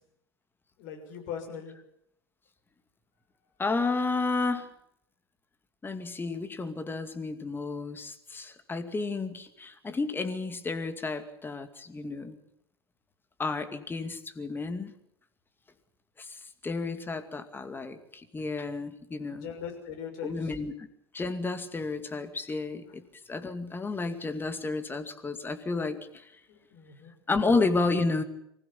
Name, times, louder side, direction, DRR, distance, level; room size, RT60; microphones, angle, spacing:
voice 1, 0.8-1.7 16.7-17.1 19.3-20.5 26.5-27.1, left 7 dB, 55° left, 3 dB, 6.5 m, -41 dB
voice 2, 3.6-4.7 5.8-12.4 13.4-14.9 16.2-19.5 20.2-20.9 21.1-26.3 27.3-28.2, left 3 dB, 15° left, 9 dB, 2.4 m, -31 dB
24.5 x 16.0 x 8.5 m, 0.75 s
figure-of-eight pair, 85°, 14 cm